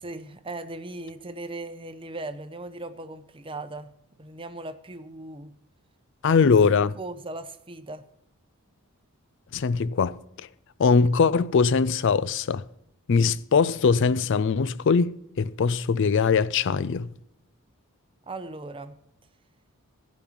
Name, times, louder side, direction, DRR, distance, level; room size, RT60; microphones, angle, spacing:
voice 1, 0.0-3.9 4.2-5.5 6.4-6.5 7.0-8.0 18.3-19.0, right 2 dB, 25° right, 0.7 m, -38 dB
voice 2, 6.2-6.9 9.5-10.2 10.8-12.6 13.1-17.1, left 5 dB, 55° left, 0.4 m, -21 dB
15.5 x 5.3 x 7.3 m
head